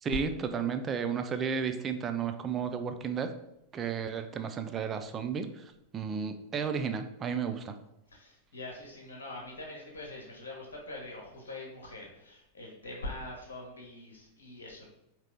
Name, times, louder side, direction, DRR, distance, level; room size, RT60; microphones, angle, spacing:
voice 1, 0.0-3.3 3.7-7.7, right 6 dB, 25° right, 8 dB, 0.4 m, -33 dB
voice 2, 8.1-14.9, left 2 dB, 65° left, -1 dB, 1.1 m, -43 dB
4.8 x 2.9 x 3.3 m, 0.85 s
figure-of-eight pair, 90°, 0 cm